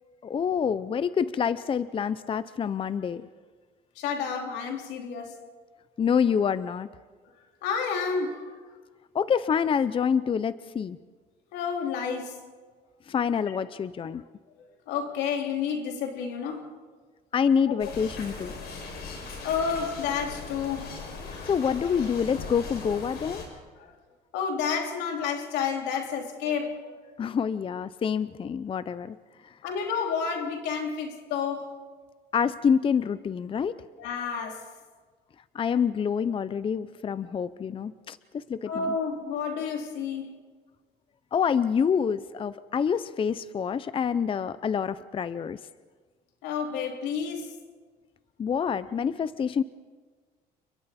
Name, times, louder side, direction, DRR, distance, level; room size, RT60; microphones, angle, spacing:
voice 1, 0.2-3.3 6.0-6.9 9.1-11.0 13.1-14.2 17.3-18.5 21.3-23.4 27.2-29.2 32.3-33.8 35.5-38.9 41.3-45.6 48.4-49.6, left 7 dB, 30° left, 0.6 m, -27 dB
voice 2, 4.0-5.4 7.6-8.6 11.5-12.4 13.5-13.6 14.9-16.7 17.7-17.9 19.3-21.1 23.8-23.9 24.3-26.9 29.6-31.7 34.0-34.6 38.7-40.3 46.4-47.5, left 6 dB, 90° left, 3.1 m, -30 dB
sound 1, 17.8-23.4, left 4 dB, 70° left, 6.1 m, -39 dB
29.5 x 22.5 x 4.3 m
cardioid pair, 110°, 17 cm